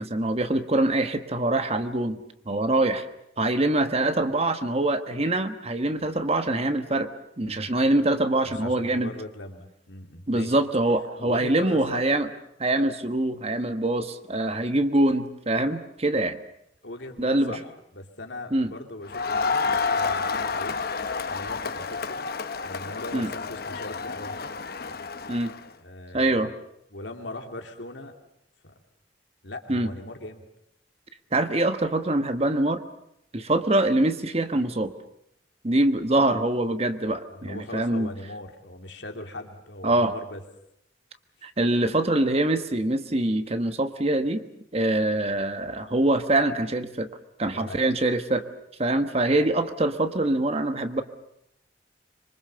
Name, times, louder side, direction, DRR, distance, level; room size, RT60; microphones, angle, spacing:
voice 1, 0.0-3.0 3.4-7.1 7.4-9.1 10.3-12.3 12.6-16.4 17.2-17.5 18.5-18.7 23.1-23.3 25.3-25.5 26.1-26.5 29.7-29.9 31.3-32.8 33.3-34.9 35.6-38.1 39.8-40.1 41.4-44.4 44.7-47.1 47.4-48.4 48.8-51.0, right 2 dB, 35° right, 9 dB, 1.3 m, -24 dB
voice 2, 8.4-10.6 11.2-12.2 16.8-20.8 21.3-22.2 22.6-24.5 25.8-26.5 26.9-28.1 28.6-28.8 29.4-30.4 37.3-40.4 47.5-47.8, left 1 dB, 80° left, 4 dB, 2.8 m, -39 dB
Crowd, 19.1-25.6, left 4 dB, 55° left, 1.0 m, -29 dB
25.5 x 24.0 x 6.8 m, 0.78 s
head